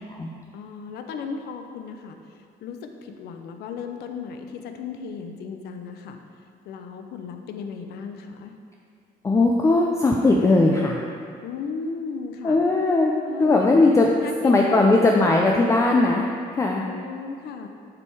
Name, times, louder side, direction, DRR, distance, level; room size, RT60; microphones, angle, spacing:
voice 1, 0.5-2.2 2.6-6.2 6.7-8.5 11.4-12.6 13.3-13.6 14.2-14.8 15.2-15.3 16.8-17.7, left 5 dB, 75° left, 6 dB, 0.6 m, -35 dB
voice 2, 9.2-11.0 12.4-13.1 13.4-14.1 14.4-16.2 16.5-16.8, left 2 dB, 15° left, 0 dB, 0.4 m, -18 dB
6.7 x 3.5 x 4.7 m, 2.3 s
cardioid pair, 110°, 17 cm